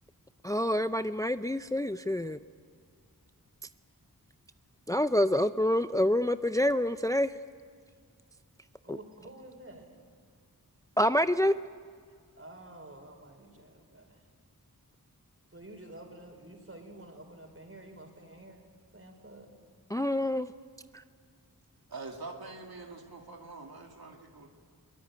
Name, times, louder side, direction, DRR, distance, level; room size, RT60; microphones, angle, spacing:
voice 1, 0.4-2.4 4.9-7.3 8.9-9.0 11.0-11.5 19.9-20.5, left 1 dB, 10° left, 11 dB, 0.5 m, -27 dB
voice 2, 8.8-10.0 12.3-14.2 15.5-18.6 18.9-19.5, right 1 dB, 40° right, 4 dB, 4.8 m, -49 dB
voice 3, 21.9-24.5, right 3 dB, 90° right, 1 dB, 2.5 m, -44 dB
22.5 x 20.5 x 9.4 m, 2.2 s
wide cardioid pair, 55°, 36 cm